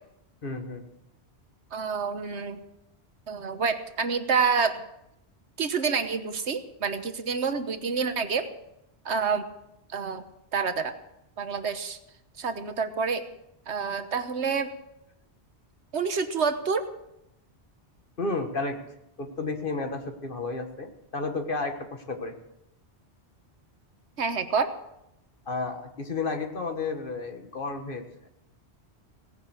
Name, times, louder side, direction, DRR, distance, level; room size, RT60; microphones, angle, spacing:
voice 1, 0.4-0.8 18.2-18.8 19.2-22.3 25.5-28.3, left 3 dB, 50° left, 5 dB, 1.7 m, -32 dB
voice 2, 1.7-2.6 3.3-4.8 5.6-8.5 9.0-9.4 9.9-10.2 10.5-10.9 11.4-12.0 12.4-13.2 13.7-14.7 15.9-16.9 24.2-24.7, right 5 dB, 80° right, 9 dB, 1.5 m, -27 dB
17.5 x 10.5 x 6.4 m, 0.84 s
omnidirectional pair, 1.1 m